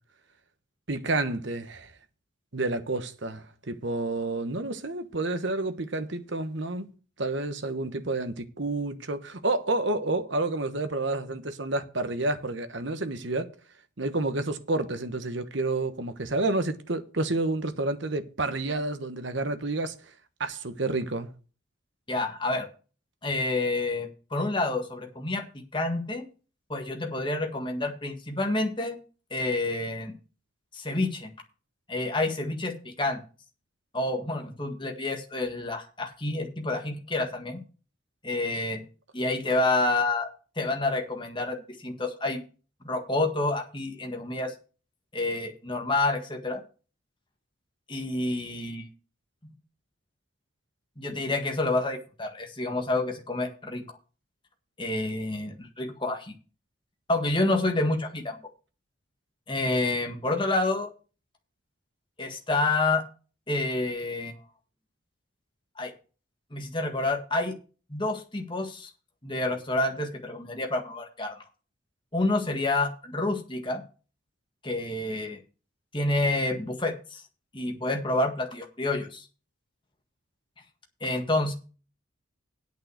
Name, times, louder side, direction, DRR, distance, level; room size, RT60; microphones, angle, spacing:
voice 1, 0.9-1.9 2.5-6.9 7.2-13.5 14.0-19.9 20.4-21.3, right 2 dB, 60° right, 1.2 m, -29 dB
voice 2, 22.1-22.7 23.2-25.4 25.7-26.3 26.7-29.0 29.3-30.1 30.7-31.3 31.9-33.2 33.9-37.6 38.2-38.8 39.1-40.3 40.5-42.4 42.8-44.5 45.1-46.6 47.9-48.8 51.0-53.8 54.8-56.3 57.1-58.4 59.5-60.9 62.2-63.0 63.5-64.3 65.8-65.9 66.5-67.6 67.9-68.9 69.2-71.4 72.1-73.8 74.6-75.4 75.9-77.2 77.5-79.3 81.0-81.5, left 2 dB, 25° left, 1.7 m, -28 dB
8.7 x 6.5 x 8.0 m
head